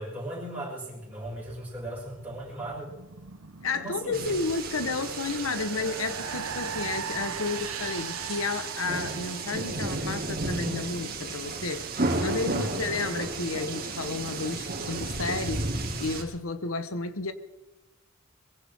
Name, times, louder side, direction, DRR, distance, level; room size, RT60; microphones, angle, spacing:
voice 1, 0.0-2.9 3.7-4.4 12.5-12.9, right 1 dB, 5° right, -6 dB, 6.3 m, -37 dB
sound 1, 1.3-10.6, right 6 dB, 80° right, 1.0 m, -40 dB
voice 2, 3.6-15.7 16.0-17.3, left 3 dB, 70° left, 11 dB, 1.3 m, -32 dB
sound 2, 4.1-16.2, right 3 dB, 50° right, 2.7 m, -33 dB
22.5 x 16.0 x 3.7 m, 1.0 s
head